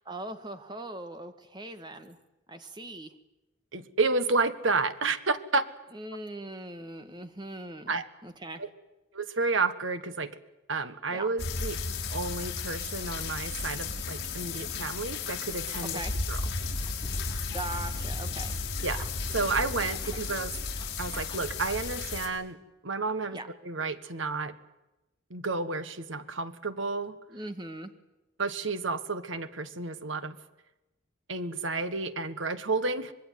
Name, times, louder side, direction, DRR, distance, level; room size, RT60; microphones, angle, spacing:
voice 1, 0.1-2.2 2.5-3.1 5.9-8.6 11.1-11.3 15.8-16.1 17.5-18.6 18.9-19.1 19.9-20.0 23.3-23.5 27.3-27.9, right 2 dB, 20° right, 9 dB, 2.0 m, -40 dB
voice 2, 3.7-5.6 7.9-8.1 8.6-8.7 9.1-10.4 10.7-11.8 12.1-16.0 16.3-16.4 18.8-19.0 19.3-20.5 21.0-22.6 22.8-23.4 23.6-24.6 25.3-27.2 28.4-30.4 31.3-33.1, right 3 dB, 70° right, 12 dB, 1.6 m, -31 dB
sound 1, 11.4-22.3, left 4 dB, 55° left, 5.0 m, -34 dB
sound 2, 16.3-21.4, left 3 dB, 20° left, 2.5 m, -50 dB
25.5 x 21.5 x 9.4 m, 0.98 s
head